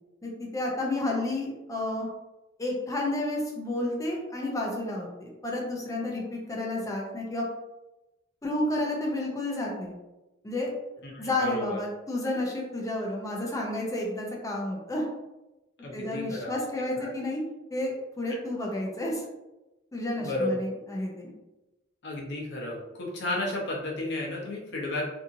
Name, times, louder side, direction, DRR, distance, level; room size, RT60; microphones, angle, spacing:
voice 1, 0.2-2.1 2.6-7.5 8.4-9.9 10.4-10.7 11.2-15.0 15.9-17.4 17.7-19.2 19.9-21.3, left 1 dB, 15° left, -2 dB, 0.5 m, -31 dB
voice 2, 11.0-11.8 15.8-16.5 17.0-17.1 18.3-18.4 20.2-20.5 22.0-25.0, left 2 dB, 60° left, -2 dB, 0.8 m, -33 dB
2.7 x 2.5 x 2.6 m, 1.0 s
head